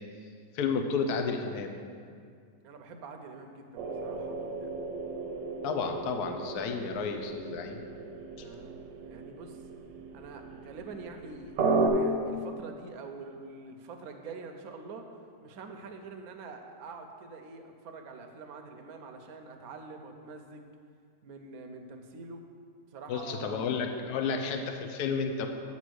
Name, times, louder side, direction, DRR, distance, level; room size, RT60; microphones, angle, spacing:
voice 1, 0.5-1.7 5.6-7.8 23.1-25.5, left 5 dB, 70° left, 5 dB, 1.1 m, -31 dB
voice 2, 2.6-4.7 8.3-9.6 10.1-11.6 11.8-20.7 21.2-22.4 22.9-23.6 24.1-24.3, right 4 dB, 65° right, 4 dB, 1.1 m, -46 dB
sound 1, 3.7-11.9, right 4 dB, 85° right, 1.6 m, -35 dB
8.6 x 4.3 x 6.3 m, 2.2 s
omnidirectional pair, 1.9 m